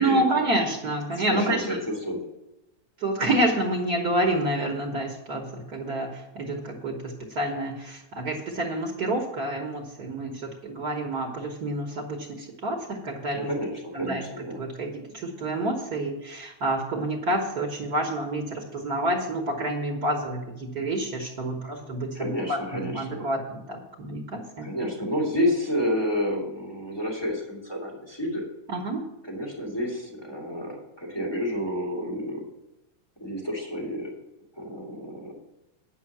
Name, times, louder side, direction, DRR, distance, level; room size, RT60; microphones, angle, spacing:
voice 1, 0.0-1.8 3.0-13.5 13.9-14.2 14.6-24.7 28.7-29.0, right 1 dB, 85° right, 1 dB, 0.8 m, -28 dB
voice 2, 1.1-1.8 2.0-2.2 13.3-14.6 22.1-23.3 24.6-28.5 29.3-32.4 33.2-34.1 34.6-35.3, equal, 10° left, -2 dB, 2.2 m, -30 dB
9.7 x 5.5 x 7.2 m, 0.91 s
omnidirectional pair, 3.4 m